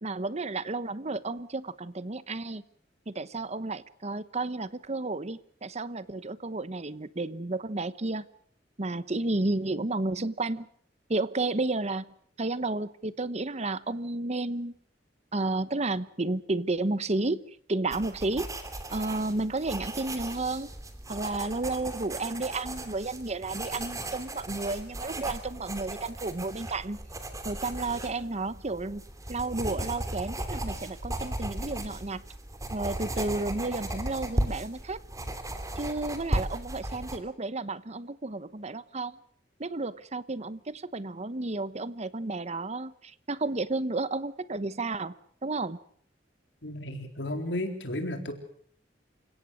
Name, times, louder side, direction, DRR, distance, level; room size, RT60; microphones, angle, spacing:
voice 1, 0.0-2.6 3.1-8.2 8.8-10.7 11.1-12.0 12.4-14.7 15.3-17.4 17.7-18.5 18.9-20.7 21.1-27.0 27.4-29.0 29.3-32.2 32.7-35.0 35.8-39.2 39.6-45.1 45.4-45.8, right 2 dB, 40° right, 16 dB, 1.0 m, -32 dB
sound 1, 17.9-37.2, right 1 dB, 20° right, 2.9 m, -36 dB
voice 2, 46.6-48.3, left 1 dB, 90° left, 6 dB, 4.0 m, -33 dB
28.5 x 17.0 x 6.4 m, 0.63 s
head